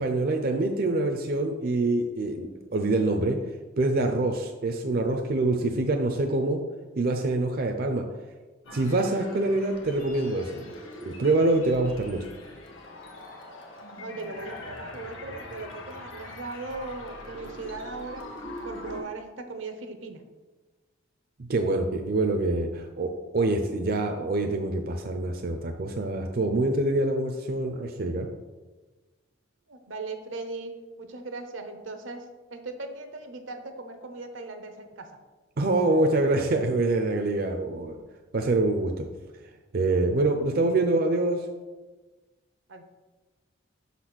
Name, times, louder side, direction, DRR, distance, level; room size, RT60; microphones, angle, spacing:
voice 1, 0.0-3.4 3.8-6.6 7.0-8.1 8.7-10.7 11.0-12.3 21.5-28.3 35.6-38.0 38.3-39.0 39.7-41.4, right 2 dB, 50° right, 3 dB, 0.5 m, -25 dB
sound 1, 8.6-19.0, left 1 dB, 85° left, 1.4 m, -42 dB
voice 2, 14.0-18.3 18.6-20.2 29.7-30.7 31.0-35.2 37.9-38.0 42.7-42.8, right 3 dB, 80° right, 7 dB, 0.8 m, -38 dB
5.7 x 4.1 x 6.1 m, 1.3 s
head